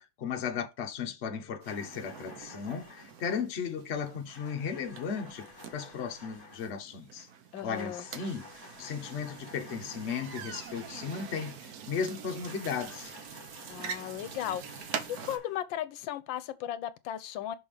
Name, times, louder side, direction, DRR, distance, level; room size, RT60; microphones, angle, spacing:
voice 1, 0.0-5.5 5.7-7.3 7.6-13.1, left 6 dB, 45° left, 1.0 m, -36 dB
sound 1, 1.6-15.4, right 7 dB, 60° right, 1.2 m, -45 dB
sound 2, 1.7-3.2 4.3-6.8 7.8-11.7 12.5-15.7, left 4 dB, 30° left, 1.8 m, -52 dB
voice 2, 7.5-8.0 13.7-17.6, left 11 dB, 85° left, 1.3 m, -36 dB
5.9 x 5.5 x 3.3 m
omnidirectional pair, 2.0 m